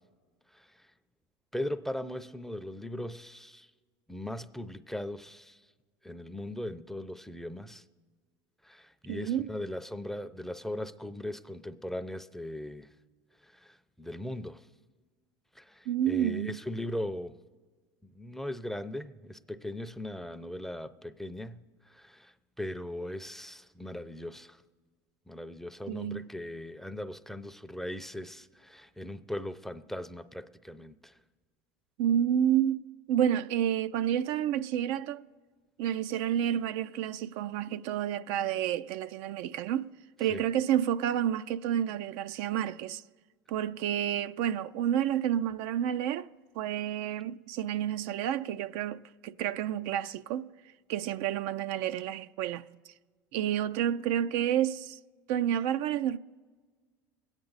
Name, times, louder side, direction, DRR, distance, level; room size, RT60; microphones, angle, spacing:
voice 1, 1.5-3.7 4.1-5.6 6.0-7.8 8.6-12.9 13.4-14.7 15.6-17.4 18.0-24.6 25.3-31.2 40.3-40.4, left 1 dB, 5° left, 0.5 m, -39 dB
voice 2, 9.1-9.5 15.9-16.6 25.9-26.3 32.0-32.8 33.1-35.2 35.8-39.9 40.2-43.0 43.5-46.3 46.5-50.5 50.9-52.6 53.3-55.0 55.3-56.2, right 10 dB, 65° right, 0.4 m, -30 dB
21.5 x 8.9 x 4.0 m
supercardioid pair, 95°, 11 cm